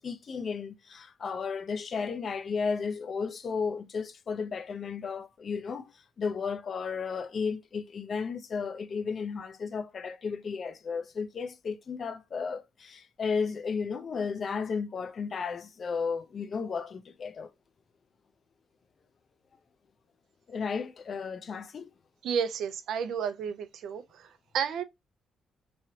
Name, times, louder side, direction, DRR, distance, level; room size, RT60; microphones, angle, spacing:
voice 1, 0.0-17.5 20.5-21.9, left 5 dB, 50° left, 0.5 m, -34 dB
voice 2, 22.2-24.8, right 7 dB, 75° right, 0.5 m, -32 dB
3.1 x 2.8 x 2.7 m
cardioid pair, 90°, 0 cm